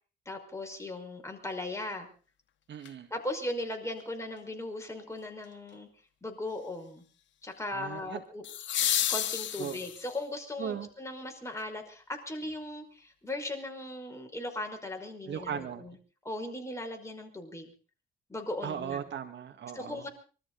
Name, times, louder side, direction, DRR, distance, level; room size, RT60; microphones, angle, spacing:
voice 1, 0.3-2.1 3.1-5.9 6.2-7.0 7.4-8.4 9.1-16.0 16.2-17.7 18.3-19.0 19.7-20.1, left 1 dB, 15° left, 3 dB, 5.3 m, -38 dB
voice 2, 2.7-3.1 7.7-8.2 9.6-9.8 10.6-10.9 15.3-15.9 18.6-20.1, right 8 dB, 65° right, 7 dB, 2.1 m, -37 dB
sound 1, 2.8-2.9 8.4-10.2 12.4-12.5, left 11 dB, 70° left, 1.3 m, -31 dB
24.5 x 14.0 x 4.1 m, 0.38 s
cardioid pair, 90°, 20 cm